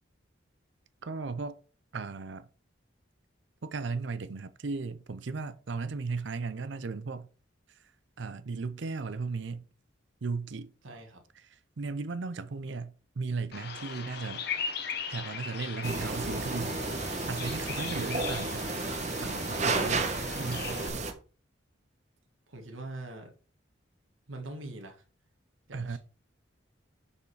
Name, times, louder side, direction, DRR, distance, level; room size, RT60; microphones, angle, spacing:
voice 1, 1.0-1.6 1.9-2.5 3.6-7.3 8.2-9.6 10.2-10.7 11.3-11.5 11.8-14.4 15.1-16.8 17.3-18.6 19.2-20.1 20.4-20.8 25.7-26.0, right 4 dB, 65° right, 0.5 m, -36 dB
voice 2, 10.8-11.2 22.5-23.3 24.3-24.9 25.7-26.0, right 2 dB, 90° right, 1.7 m, -42 dB
Bird vocalization bird call bird song, 13.5-20.9, left 6 dB, 55° left, 1.2 m, -39 dB
sound 1, 15.8-21.1, right 3 dB, 35° right, 1.1 m, -32 dB
6.6 x 5.6 x 4.8 m
head